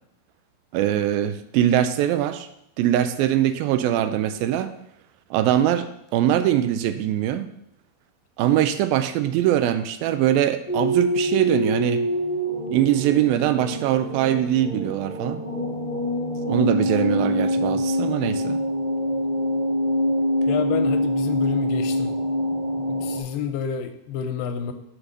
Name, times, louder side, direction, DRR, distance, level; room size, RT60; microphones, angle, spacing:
voice 1, 0.7-2.5 2.8-4.8 5.3-7.5 8.4-12.0 12.7-15.4 16.5-18.6, right 11 dB, 85° right, 10 dB, 2.4 m, -22 dB
sound 1, 10.7-23.2, equal, 20° left, 1.0 m, -25 dB
voice 2, 20.5-22.1 22.9-24.7, left 8 dB, 80° left, 7 dB, 2.3 m, -29 dB
5.8 x 5.0 x 6.5 m, 0.77 s
omnidirectional pair, 4.1 m